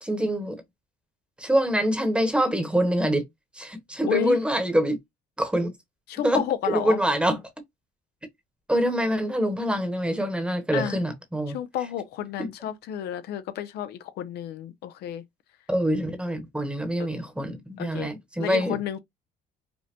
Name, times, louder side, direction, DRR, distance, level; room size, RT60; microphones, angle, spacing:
voice 1, 0.0-0.6 1.4-3.2 3.6-5.0 5.4-5.7 6.2-7.4 8.7-11.6 12.4-12.5 15.7-18.8, right 1 dB, 5° right, 1.1 m, -25 dB
voice 2, 4.0-4.4 6.1-7.0 10.7-11.0 11.5-15.2 17.8-18.1 18.4-19.0, left 10 dB, 75° left, 0.6 m, -31 dB
5.3 x 2.1 x 2.9 m
cardioid pair, 110°, 17 cm